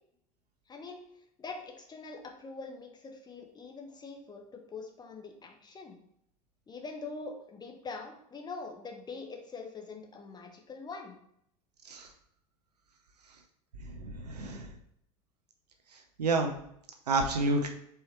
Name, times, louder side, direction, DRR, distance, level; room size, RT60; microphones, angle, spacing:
voice 1, 0.7-1.0 1.4-6.0 6.7-11.1, left 4 dB, 20° left, 3 dB, 0.8 m, -43 dB
voice 2, 13.8-14.6 16.2-16.5 17.1-17.7, right 3 dB, 75° right, 4 dB, 0.6 m, -29 dB
4.6 x 2.9 x 3.2 m, 0.71 s
figure-of-eight pair, 70°, 20 cm